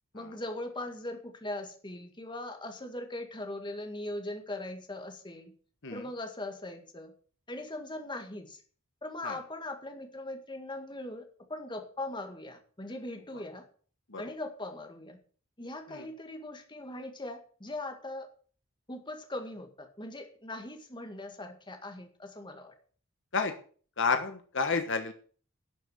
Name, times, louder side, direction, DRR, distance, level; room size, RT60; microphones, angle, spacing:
voice 1, 0.1-5.5 5.9-7.1 7.5-8.6 9.0-13.7 14.2-15.2 15.6-18.3 18.9-22.7, left 1 dB, 20° left, 5 dB, 2.0 m, -40 dB
voice 2, 24.0-25.1, left 4 dB, 60° left, 6 dB, 1.4 m, -30 dB
12.0 x 6.6 x 7.9 m, 0.43 s
head